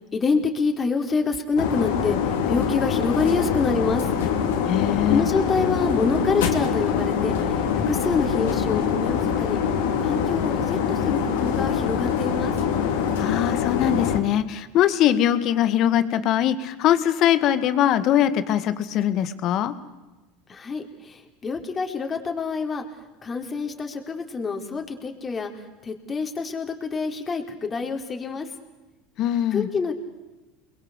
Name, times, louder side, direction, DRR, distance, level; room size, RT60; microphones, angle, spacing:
voice 1, 0.0-2.2 2.5-4.1 5.1-7.4 7.9-9.6 10.0-12.5 20.5-22.8 23.2-25.5 25.8-28.5 29.5-29.9, left 4 dB, 25° left, 4 dB, 4.2 m, -26 dB
sound 1, 1.6-14.2, left 7 dB, 80° left, 3.6 m, -24 dB
voice 2, 4.7-5.2 13.2-19.7 29.2-29.7, left 11 dB, 55° left, 12 dB, 2.1 m, -22 dB
29.5 x 22.0 x 8.2 m, 1.1 s
supercardioid pair, 100°, 0 cm